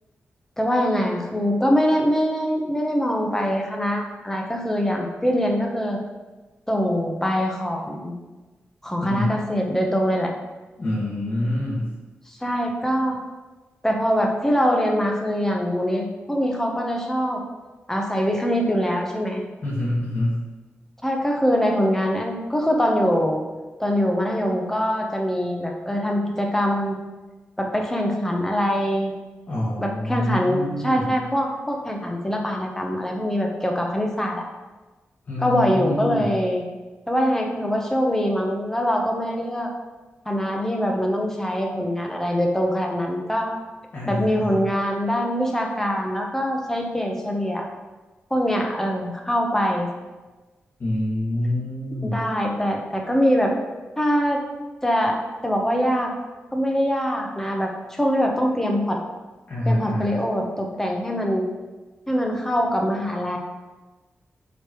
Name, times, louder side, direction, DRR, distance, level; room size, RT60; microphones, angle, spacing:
voice 1, 0.6-6.0 6.7-8.1 8.8-10.3 12.3-13.2 13.8-17.4 17.9-19.4 21.0-23.4 23.8-27.0 27.6-29.1 29.8-34.5 35.4-36.6 37.1-39.7 40.3-43.5 44.1-47.7 48.3-49.9 52.0-53.5 54.0-54.4 54.8-56.1 56.5-59.0 59.7-61.5 62.1-63.4, equal, 10° left, 1 dB, 1.0 m, -23 dB
voice 2, 9.0-9.3 10.8-11.9 19.6-20.4 29.5-31.2 35.3-36.4 43.9-44.6 50.8-52.3 59.5-60.2, left 1 dB, 45° left, -9 dB, 1.8 m, -26 dB
6.3 x 5.1 x 3.1 m, 1.2 s
wide cardioid pair, 95°, 4 cm